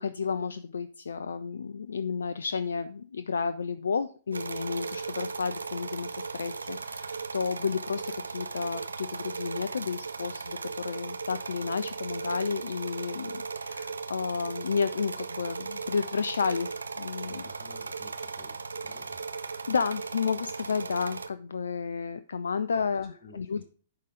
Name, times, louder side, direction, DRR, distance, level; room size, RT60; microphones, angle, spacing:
voice 1, 0.0-16.7 17.0-17.4 19.7-23.6, left 5 dB, 70° left, 12 dB, 0.3 m, -31 dB
sound 1, 4.3-21.3, right 4 dB, 80° right, 0.5 m, -37 dB
voice 2, 17.2-19.2 22.7-22.9 23.2-23.6, left 3 dB, 30° left, 3 dB, 1.1 m, -53 dB
10.5 x 3.8 x 4.9 m, 0.41 s
figure-of-eight pair, 110°, 0 cm